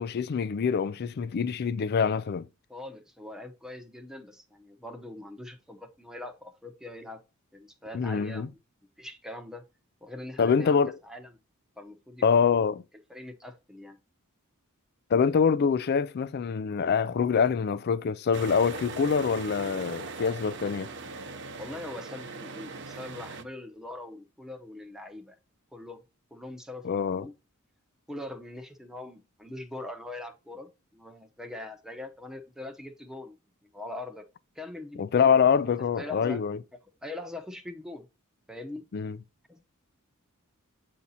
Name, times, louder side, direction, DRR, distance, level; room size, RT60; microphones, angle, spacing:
voice 1, 0.0-2.5 7.9-8.5 10.4-10.9 12.2-12.8 15.1-20.9 26.8-27.2 35.0-36.6 38.9-39.2, left 6 dB, 45° left, 0.4 m, -25 dB
voice 2, 2.7-7.2 7.5-8.5 9.0-9.6 10.0-11.3 11.8-12.6 13.1-14.0 21.6-25.4 25.7-26.0 26.3-26.8 27.1-27.3 28.1-33.4 33.6-34.2 34.5-36.4 37.0-38.1 38.5-38.8 39.5-39.6, left 1 dB, ahead, 0.8 m, -42 dB
sound 1, 18.3-23.4, right 3 dB, 55° right, 0.8 m, -39 dB
8.4 x 2.8 x 4.0 m
head